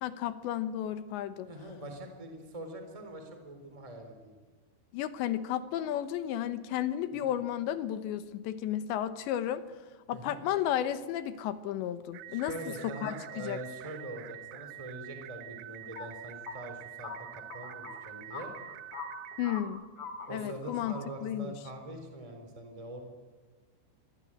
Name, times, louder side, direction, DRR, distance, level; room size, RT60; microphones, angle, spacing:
voice 1, 0.0-1.5 4.9-9.6 10.1-12.6 12.8-13.1 13.4-13.6 19.4-19.8 20.3-21.5, left 11 dB, 80° left, 12 dB, 3.3 m, -33 dB
voice 2, 1.5-4.3 7.1-7.2 10.1-10.4 12.3-18.5 20.3-23.0, right 1 dB, 10° right, 5 dB, 3.4 m, -43 dB
sound 1, 12.1-19.6, right 16 dB, 75° right, 2.5 m, -46 dB
sound 2, 12.9-13.0 13.8-13.9 14.5-14.6 15.8-16.1 16.5-16.6 17.0-17.2 17.5-18.0 18.3-18.4 18.7-19.6 20.0-20.3 20.6-21.0, left 6 dB, 35° left, 3.3 m, -42 dB
25.5 x 23.0 x 9.2 m, 1.3 s
omnidirectional pair, 5.3 m